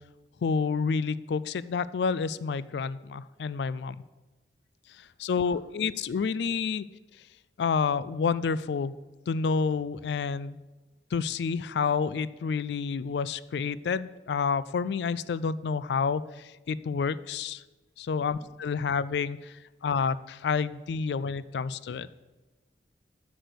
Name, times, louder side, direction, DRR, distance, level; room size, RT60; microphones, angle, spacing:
voice 1, 0.4-4.0 5.2-6.8 7.6-9.0 9.3-10.6 11.1-17.6 18.0-19.5 19.8-22.1, left 5 dB, 70° left, 17 dB, 0.3 m, -29 dB
voice 2, 5.0-5.7 18.1-18.5 19.8-19.9 21.2-21.3 21.7-22.2, equal, 45° left, -5 dB, 3.7 m, -58 dB
7.7 x 6.3 x 6.8 m, 1.1 s
head